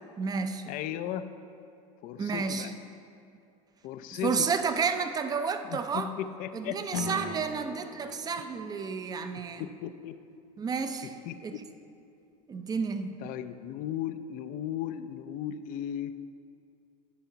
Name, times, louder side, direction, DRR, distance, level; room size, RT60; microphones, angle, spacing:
voice 1, 0.2-0.6 2.2-2.7 4.2-6.1 6.5-9.7 10.6-11.1 11.4-11.6 12.5-13.2, right 5 dB, 20° right, 9 dB, 0.5 m, -31 dB
voice 2, 0.7-1.3 2.0-2.7 3.8-4.5 5.6-7.3 9.6-10.2 11.3-11.6 13.2-16.1, left 10 dB, 50° left, 11 dB, 0.5 m, -36 dB
Acoustic guitar / Strum, 6.9-11.7, left 3 dB, 90° left, 1.1 m, -42 dB
11.5 x 5.7 x 3.9 m, 2.5 s
supercardioid pair, 115°, 18 cm